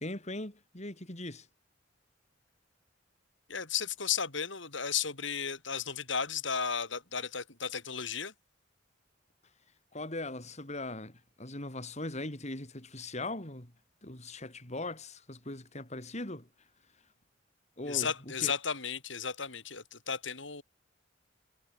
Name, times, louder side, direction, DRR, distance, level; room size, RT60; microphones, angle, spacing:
voice 1, 0.0-1.5 9.9-13.7 14.0-16.7 16.9-17.1 17.8-18.5, left 2 dB, 35° left, 4.6 m, -40 dB
voice 2, 3.5-8.3 17.9-20.6, left 7 dB, 70° left, 5.1 m, -34 dB
head